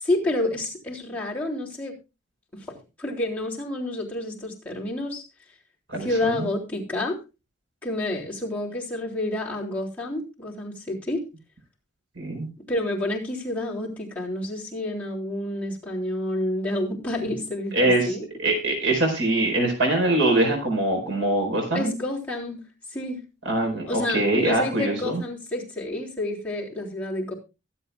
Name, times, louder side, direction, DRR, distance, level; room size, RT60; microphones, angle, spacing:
voice 1, 0.0-1.9 2.7-5.2 6.0-7.2 7.8-11.2 12.7-18.3 21.7-22.6 22.9-23.2 23.9-27.3, left 1 dB, 10° left, -6 dB, 3.4 m, -29 dB
voice 2, 5.9-6.5 12.2-12.5 17.7-18.1 18.4-21.9 23.4-25.2, right 2 dB, 75° right, 2 dB, 4.7 m, -23 dB
23.5 x 8.1 x 2.3 m, 0.28 s
head